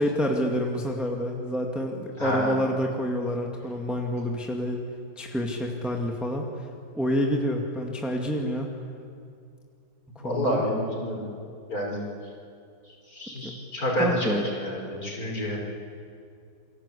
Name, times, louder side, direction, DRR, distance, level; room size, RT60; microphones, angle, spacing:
voice 1, 0.0-4.8 5.2-6.5 6.9-8.7 10.2-10.6 13.4-13.5 14.0-14.4, equal, ahead, 1 dB, 1.9 m, -28 dB
voice 2, 2.2-2.5 10.2-11.2 11.7-12.0 13.1-15.6, equal, 45° left, -1 dB, 5.9 m, -28 dB
28.0 x 23.0 x 8.5 m, 2.3 s
omnidirectional pair, 2.2 m